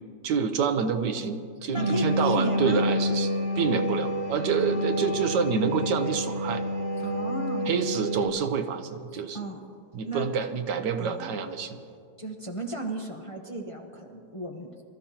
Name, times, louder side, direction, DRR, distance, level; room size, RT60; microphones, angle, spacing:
voice 1, 0.2-3.3 3.6-6.6 7.7-9.4 9.9-11.8, right 6 dB, 80° right, 8 dB, 1.5 m, -27 dB
voice 2, 1.7-2.9 4.6-5.1 7.0-7.7 9.1-9.6 10.1-10.3 11.0-11.4 12.2-14.8, right 1 dB, 25° left, 1 dB, 0.8 m, -35 dB
sound 1, 1.7-8.3, equal, 40° right, 0.9 m, -28 dB
24.5 x 14.0 x 2.9 m, 2.3 s
omnidirectional pair, 1.8 m